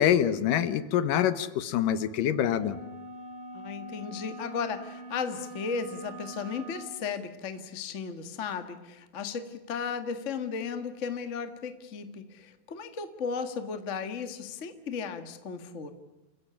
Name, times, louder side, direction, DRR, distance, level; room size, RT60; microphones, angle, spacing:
voice 1, 0.0-2.8, left 10 dB, 75° left, 14 dB, 2.5 m, -25 dB
sound 1, 2.4-7.0, right 2 dB, 45° right, 5.3 m, -44 dB
voice 2, 3.5-15.9, left 5 dB, 35° left, 9 dB, 1.1 m, -35 dB
29.0 x 16.5 x 10.0 m, 1.1 s
omnidirectional pair, 4.1 m